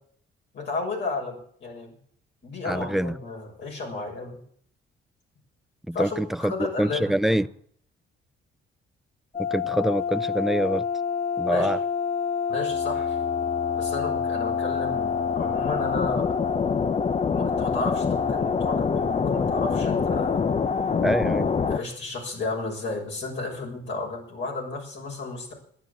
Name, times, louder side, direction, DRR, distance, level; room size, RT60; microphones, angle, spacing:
voice 1, 0.5-1.9 2.4-4.4 5.9-7.4 11.5-11.7 12.5-13.2 13.8-16.3 17.3-20.4 21.7-25.5, left 3 dB, 65° left, 6.7 m, -32 dB
voice 2, 2.6-3.2 5.9-7.5 9.4-10.9 11.4-11.8 21.0-21.5, right 1 dB, ahead, 0.6 m, -25 dB
sound 1, 9.3-21.8, left 6 dB, 35° left, 0.9 m, -26 dB
12.5 x 10.5 x 9.9 m
cardioid pair, 90°, 20 cm